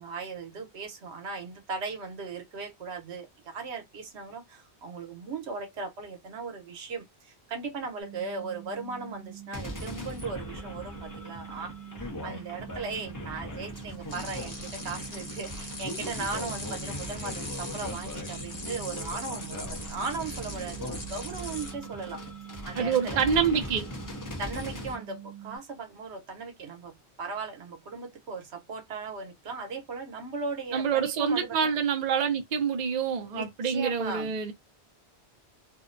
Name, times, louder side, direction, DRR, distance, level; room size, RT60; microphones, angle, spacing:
voice 1, 0.0-11.7 12.0-22.2 22.7-23.2 24.4-31.7 33.3-34.3, right 4 dB, 80° right, 1.1 m, -37 dB
sound 1, 8.0-25.6, right 12 dB, 80° left, 1.0 m, -45 dB
sound 2, 9.5-25.0, left 1 dB, 20° left, 0.6 m, -40 dB
sound 3, 14.1-21.7, left 2 dB, 40° left, 1.0 m, -40 dB
voice 2, 22.8-23.9 30.7-34.5, right 7 dB, 50° right, 0.6 m, -26 dB
2.7 x 2.1 x 2.5 m
omnidirectional pair, 1.1 m